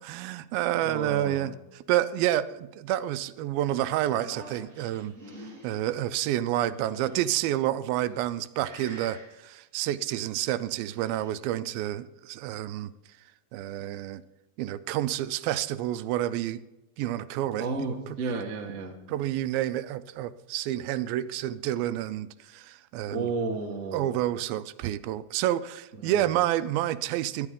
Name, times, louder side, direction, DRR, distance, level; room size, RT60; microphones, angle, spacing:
voice 1, 0.0-5.1 5.6-12.9 13.5-14.2 14.6-16.6 17.0-17.9 19.1-23.3 23.9-27.5, right 13 dB, 85° right, 13 dB, 2.4 m, -29 dB
voice 2, 0.7-1.5 17.6-18.9 23.1-24.2 26.0-26.2, right 4 dB, 50° right, 2 dB, 0.8 m, -32 dB
sound 1, 4.0-5.8 6.6-7.4 8.1-8.4 8.7-9.3 10.6-11.3, right 1 dB, 20° right, 6.6 m, -47 dB
24.0 x 10.0 x 3.7 m, 0.98 s
omnidirectional pair, 4.1 m